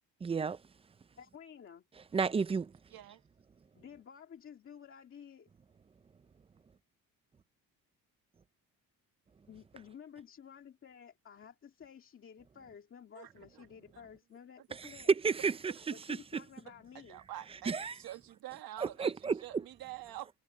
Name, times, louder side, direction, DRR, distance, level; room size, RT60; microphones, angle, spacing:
voice 1, 0.2-0.6 2.1-2.7 14.7-14.9 15.2-16.4 17.6-17.9 18.8-19.6, right 5 dB, 15° right, 0.4 m, -33 dB
voice 2, 1.2-1.8 3.7-5.5 9.5-15.1 15.9-17.2, left 7 dB, 35° left, 2.1 m, -52 dB
voice 3, 2.9-3.2 13.1-13.7 13.9-14.0 14.6-14.7 17.1-19.1 19.4-20.3, right 13 dB, 65° right, 1.6 m, -46 dB
cardioid pair, 170°, 38 cm